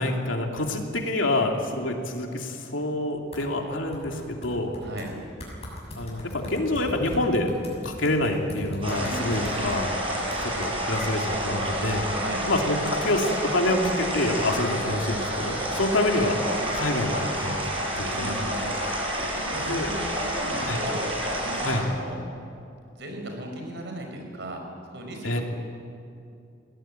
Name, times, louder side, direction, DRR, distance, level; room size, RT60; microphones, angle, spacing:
voice 1, 0.0-4.8 5.9-7.5 7.8-12.1 12.5-17.6 18.0-18.3 19.7-19.9 20.7-20.8 21.6-21.8 25.2-25.4, left 1 dB, 90° left, 2 dB, 2.8 m, -27 dB
sound 1, 3.3-3.4 3.9-5.1 5.4-9.8 10.3-10.6, left 1 dB, 35° left, 6.7 m, -41 dB
voice 2, 4.8-5.2 9.0-9.7 12.1-12.5 18.1-22.2 23.0-24.6 24.9-25.4, right 1 dB, 65° right, 2 dB, 5.4 m, -37 dB
sound 2, 8.8-21.8, equal, 30° right, 6.7 m, -29 dB
22.0 x 18.0 x 9.0 m, 2.6 s
head